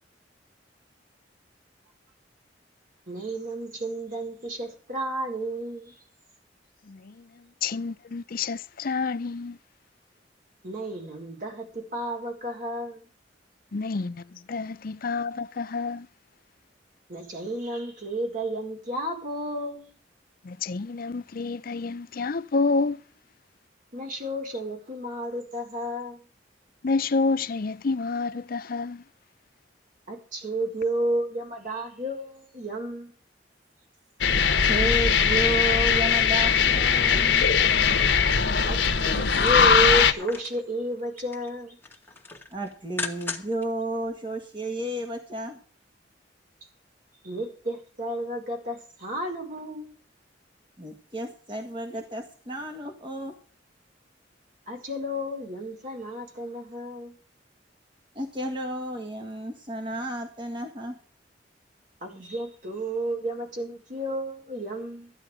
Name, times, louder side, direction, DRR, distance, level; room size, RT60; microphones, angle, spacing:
voice 1, 3.1-6.0 10.6-13.1 17.1-19.9 23.9-26.2 30.1-33.1 38.7-41.8 47.2-49.9 54.7-57.1 62.0-65.1, right 1 dB, 50° right, 4.7 m, -32 dB
voice 2, 6.9-7.3 7.6-9.6 13.7-16.1 20.4-23.0 26.8-29.0, left 4 dB, 55° left, 0.6 m, -29 dB
sound 1, 34.2-40.1, left 6 dB, 80° left, 1.1 m, -20 dB
voice 3, 34.3-37.5 42.5-45.6 50.8-53.4 58.2-61.0 62.2-62.3, right 1 dB, 30° right, 1.8 m, -32 dB
sound 2, 38.5-40.6 41.0-41.5 41.8-43.7 44.0-44.1, left 4 dB, 10° left, 2.1 m, -38 dB
14.5 x 11.0 x 5.0 m
head